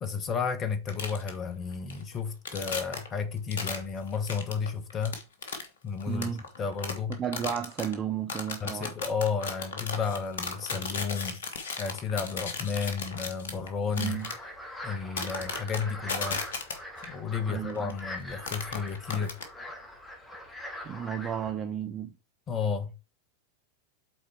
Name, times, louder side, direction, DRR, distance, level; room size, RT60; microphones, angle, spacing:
voice 1, 0.0-5.2 5.8-6.3 6.6-7.2 8.6-11.4 11.8-14.2 14.8-16.4 17.0-19.3 22.5-22.9, left 5 dB, 25° left, 1.3 m, -32 dB
sound 1, 0.9-1.4 1.7-2.1 2.5-3.1 3.5-3.8 4.1-5.7 6.0-7.9 8.3-14.4 15.2-17.1 17.7-18.0 18.3-19.4, left 4 dB, 60° left, 1.5 m, -35 dB
voice 2, 6.1-6.4 7.1-8.9 14.0-14.3 17.5-18.0 20.8-22.1, right 8 dB, 25° right, 0.7 m, -33 dB
sound 2, 14.1-21.5, left 1 dB, 10° left, 2.1 m, -42 dB
7.9 x 4.3 x 4.5 m
figure-of-eight pair, 90°, 0 cm